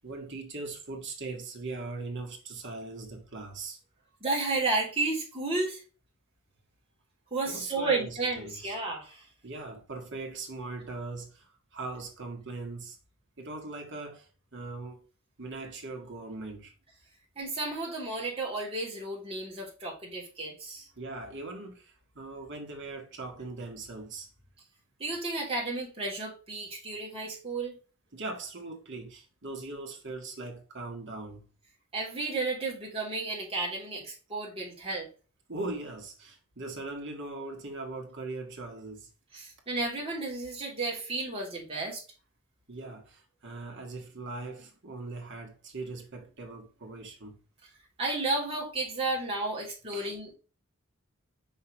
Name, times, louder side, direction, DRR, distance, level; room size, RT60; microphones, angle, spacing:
voice 1, 0.0-3.8 7.5-8.8 9.4-13.0 13.4-15.0 15.4-16.7 21.0-24.3 28.1-31.5 35.5-39.1 42.7-47.4 49.9-50.2, right 3 dB, 60° right, 1.8 m, -40 dB
voice 2, 4.2-5.8 7.3-9.2 17.4-20.9 25.0-27.8 31.9-35.1 39.3-42.0 48.0-50.4, right 3 dB, 30° right, 3.1 m, -32 dB
5.7 x 5.4 x 3.1 m
head